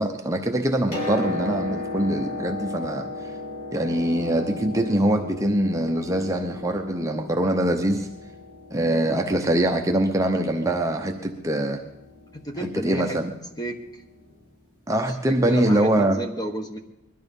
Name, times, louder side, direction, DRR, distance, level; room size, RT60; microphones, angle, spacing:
voice 1, 0.0-3.1 3.7-8.1 8.7-11.8 12.6-13.3 14.9-16.2, right 1 dB, 15° right, 3 dB, 0.8 m, -23 dB
Piano, 0.7-14.4 15.5-15.6, left 2 dB, 75° left, 5.1 m, -36 dB
voice 2, 12.3-13.2 13.6-14.0 15.3-16.8, equal, 20° left, 5 dB, 1.2 m, -32 dB
21.0 x 12.0 x 5.4 m, 0.95 s
head